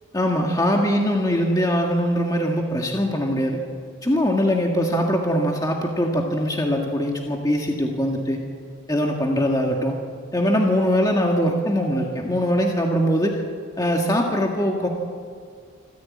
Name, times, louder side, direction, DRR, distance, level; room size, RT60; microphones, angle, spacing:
voice 1, 0.1-3.6 4.0-8.4 8.9-9.9 10.3-13.4 13.8-14.9, equal, 20° left, 1 dB, 1.8 m, -22 dB
26.0 x 14.5 x 8.6 m, 2.2 s
head